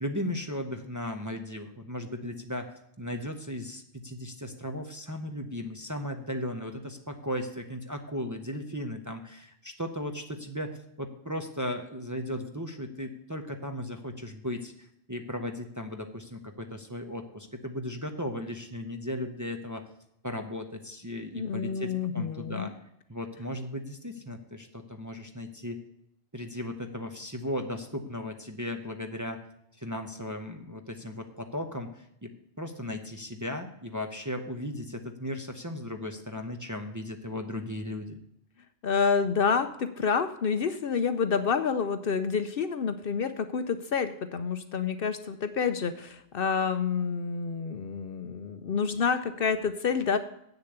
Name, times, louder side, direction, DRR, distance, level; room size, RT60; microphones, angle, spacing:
voice 1, 0.0-19.9 20.2-22.8 23.1-25.8 26.3-29.5 29.8-38.2, left 1 dB, 20° right, 5 dB, 0.7 m, -36 dB
voice 2, 21.3-22.7 38.8-50.2, left 6 dB, 60° left, 10 dB, 0.8 m, -28 dB
8.3 x 6.8 x 7.9 m, 0.75 s
omnidirectional pair, 1.2 m